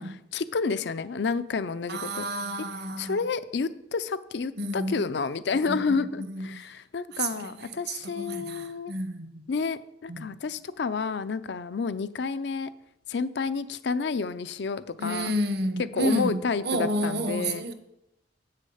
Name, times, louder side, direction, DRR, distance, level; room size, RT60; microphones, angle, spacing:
voice 1, 0.3-2.2 3.0-8.9 9.5-12.7 13.1-15.3 15.9-17.6, left 4 dB, 65° left, 0.5 m, -30 dB
voice 2, 1.9-3.2 4.6-5.0 5.7-6.6 7.1-9.4 10.1-10.3 15.0-17.7, right 1 dB, 60° right, 0.9 m, -31 dB
8.3 x 6.6 x 5.6 m
head